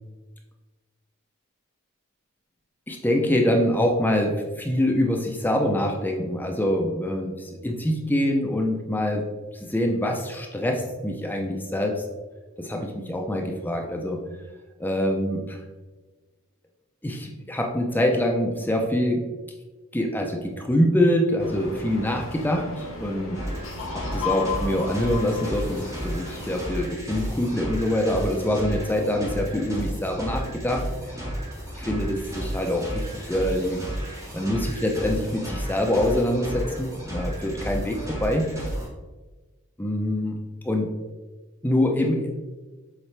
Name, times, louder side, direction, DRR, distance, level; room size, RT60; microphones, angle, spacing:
voice 1, 2.9-9.2 9.5-12.0 12.6-14.2 14.8-15.6 17.0-19.2 19.9-23.4 23.9-30.8 31.8-33.8 34.3-38.5 39.8-40.3 40.6-40.9 41.6-42.3, left 1 dB, 10° left, 1 dB, 0.5 m, -25 dB
sound 1, 21.4-26.6, left 4 dB, 70° left, 2.0 m, -34 dB
sound 2, 23.3-38.9, equal, 15° right, 1.9 m, -33 dB
7.2 x 4.1 x 3.3 m, 1.2 s
head